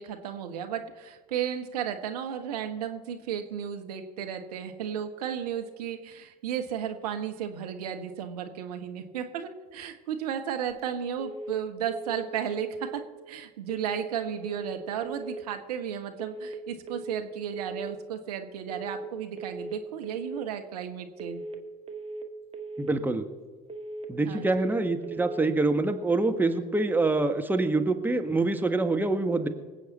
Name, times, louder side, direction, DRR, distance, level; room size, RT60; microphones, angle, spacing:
voice 1, 0.0-12.7 12.9-13.0 13.3-21.4 24.2-24.7, right 9 dB, 70° right, 6 dB, 1.3 m, -34 dB
sound 1, 11.2-11.6 11.9-12.3 12.5-12.9 13.7-14.1 14.4-14.8 15.0-15.4 16.2-16.6 16.9-17.3 17.5-17.9 18.7-19.1 19.4-19.8 20.0-20.4 21.2-21.6 21.9-22.3 22.5-22.9 23.7-24.1 24.4-24.8 25.0-25.4, right 2 dB, 30° right, 2.0 m, -38 dB
voice 2, 22.8-23.3 24.1-29.5, right 2 dB, 10° right, 6 dB, 1.4 m, -25 dB
25.5 x 8.6 x 4.2 m, 1.3 s
figure-of-eight pair, 65°, 21 cm